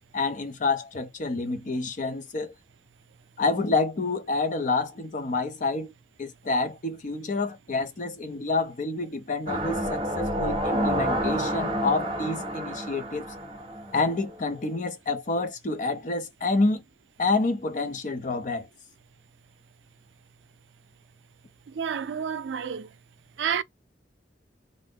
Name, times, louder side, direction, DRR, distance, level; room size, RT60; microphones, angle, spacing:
voice 1, 0.1-2.5 3.4-5.9 6.2-13.3 13.9-16.8 17.2-18.7, left 3 dB, 45° left, 0.6 m, -28 dB
sound 1, 9.5-14.4 14.7-14.8, equal, 30° right, 0.8 m, -29 dB
voice 2, 21.7-23.0 23.4-23.6, right 7 dB, 90° right, 0.4 m, -30 dB
2.5 x 2.1 x 3.4 m
head